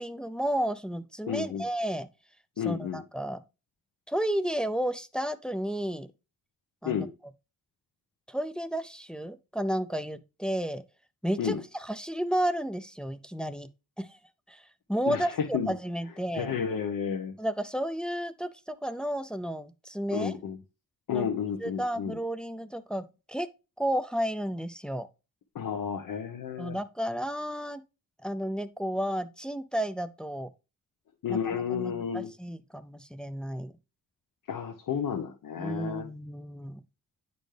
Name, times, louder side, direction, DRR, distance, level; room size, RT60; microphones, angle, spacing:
voice 1, 0.0-2.1 2.6-3.4 4.1-6.1 6.8-7.1 8.3-10.8 11.2-11.5 11.8-13.7 14.0-14.2 14.5-14.6 14.9-16.6 17.4-20.3 21.1-21.3 21.6-23.5 23.8-25.1 26.6-27.8 28.2-30.5 31.3-33.7 35.6-36.8, equal, 5° left, 0.4 m, -32 dB
voice 2, 1.3-1.6 2.6-3.0 6.8-7.1 11.4-11.6 15.1-15.7 16.3-17.3 20.1-20.6 21.1-22.1 25.5-26.8 31.2-32.3 34.5-36.1, left 7 dB, 75° left, 1.1 m, -31 dB
10.0 x 4.2 x 3.3 m
wide cardioid pair, 155°, 33 cm